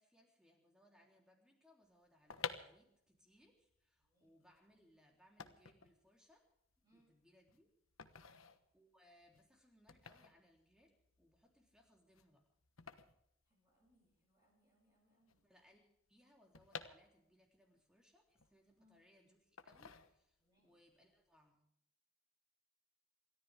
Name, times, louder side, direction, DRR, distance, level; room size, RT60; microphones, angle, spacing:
voice 1, 0.0-6.5 6.9-7.7 8.4-12.4 15.4-21.6, equal, 5° right, 0 dB, 3.6 m, -70 dB
sound 1, 2.0-14.2 14.4-14.5 14.7-17.6 18.0-19.0 19.6-20.6 20.9-21.2, left 6 dB, 85° left, 1.2 m, -52 dB
voice 2, 4.0-4.4 6.8-7.1 8.1-8.5 13.4-15.4 18.7-19.0 20.4-20.8, equal, 20° right, -6 dB, 7.7 m, -76 dB
28.0 x 13.5 x 3.6 m, 0.76 s
head